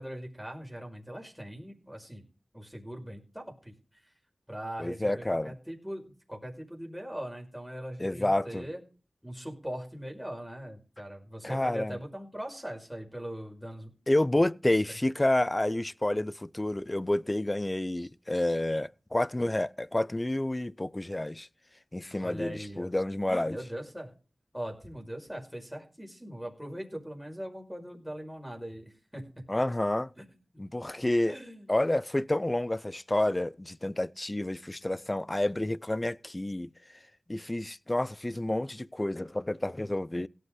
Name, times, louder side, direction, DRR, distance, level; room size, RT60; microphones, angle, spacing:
voice 1, 0.0-2.2 2.5-4.0 4.5-8.8 9.2-13.9 14.3-15.0 22.2-22.9 23.4-24.1 24.5-29.3 30.2-30.3 31.3-31.7, equal, ahead, 5.4 m, -41 dB
voice 2, 4.8-5.5 8.0-8.7 11.4-12.0 14.1-21.5 21.9-23.6 29.5-30.1 30.6-31.4 31.7-36.7 37.3-40.3, left 1 dB, 25° left, 0.5 m, -29 dB
17.5 x 8.3 x 3.9 m
cardioid pair, 50°, 0 cm